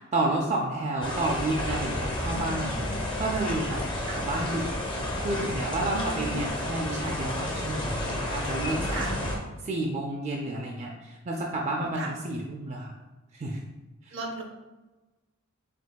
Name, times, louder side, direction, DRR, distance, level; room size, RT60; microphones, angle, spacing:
voice 1, 0.1-2.7 3.2-3.8 4.1-4.7 5.2-9.0 9.6-12.9 13.3-13.6 14.1-14.2, right 2 dB, 30° right, -1 dB, 0.4 m, -30 dB
sound 1, 1.0-9.4, left 1 dB, 20° left, 0.8 m, -31 dB
voice 2, 2.2-2.9 4.0-4.2 5.9-6.4 8.9-9.1 11.9-12.1 14.1-14.4, right 2 dB, 60° right, 2 dB, 0.7 m, -37 dB
5.2 x 3.6 x 2.2 m, 1.1 s
head